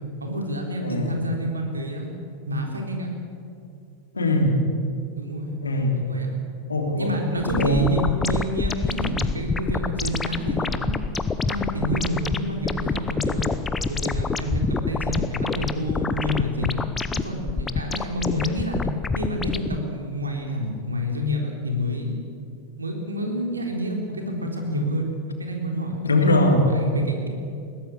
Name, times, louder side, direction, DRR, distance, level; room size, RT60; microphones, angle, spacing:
voice 1, 0.2-2.1 2.5-3.1 4.3-4.5 5.2-5.5 6.1-6.4 7.0-10.9 11.5-13.6 13.9-16.8 17.1-18.9 19.2-22.2 22.8-25.1 25.4-26.0 26.6-27.3, equal, 75° right, 2 dB, 3.7 m, -28 dB
voice 2, 0.8-1.1 4.1-4.6 5.6-6.1 6.7-7.1 7.5-8.0 26.0-26.7, left 1 dB, 75° left, 3 dB, 3.2 m, -21 dB
sound 1, 7.4-19.8, left 4 dB, 15° left, 0.9 m, -27 dB
21.0 x 17.0 x 8.6 m, 2.6 s
figure-of-eight pair, 90°, 0 cm